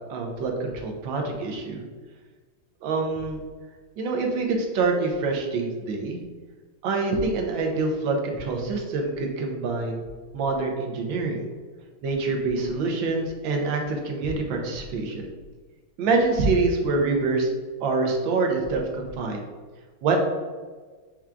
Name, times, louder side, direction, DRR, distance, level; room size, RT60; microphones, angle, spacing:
voice 1, 0.1-1.8 2.8-3.4 4.0-6.2 6.8-10.1 10.3-11.4 12.0-15.3 16.0-17.5 17.8-19.5 20.0-20.2, right 3 dB, 70° right, 2 dB, 1.4 m, -25 dB
5.7 x 2.3 x 3.6 m, 1.4 s
omnidirectional pair, 2.4 m